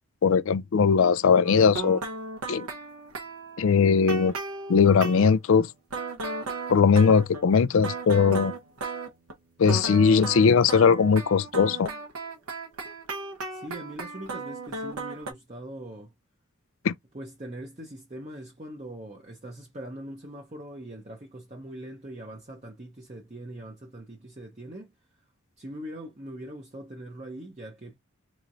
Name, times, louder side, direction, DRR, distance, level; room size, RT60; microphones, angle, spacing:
voice 1, 0.2-2.0 2.5-2.7 3.6-4.3 4.7-5.7 6.7-8.5 9.6-11.9 16.8-16.9, left 6 dB, 65° left, 0.4 m, -20 dB
sound 1, 1.4-5.3 5.9-9.3 9.6-15.3, right 3 dB, 85° right, 1.1 m, -35 dB
voice 2, 13.5-16.1 17.1-24.9 25.6-28.0, right 1 dB, 30° right, 0.7 m, -41 dB
4.2 x 3.1 x 2.5 m
head